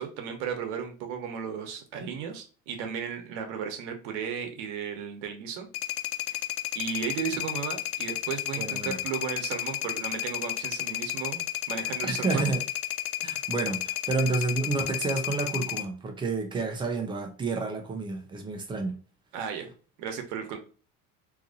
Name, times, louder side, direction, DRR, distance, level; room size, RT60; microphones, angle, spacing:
voice 1, 0.0-5.7 6.3-6.4 6.7-12.4 19.3-19.7 20.0-20.6, right 7 dB, 80° right, 5 dB, 1.0 m, -35 dB
sound 1, 5.7-15.9, left 14 dB, 60° left, 0.5 m, -32 dB
voice 2, 8.6-9.0 12.0-12.6 13.2-19.0, right 3 dB, 15° right, 3 dB, 0.6 m, -30 dB
2.9 x 2.5 x 3.8 m, 0.38 s
cardioid pair, 150°, 31 cm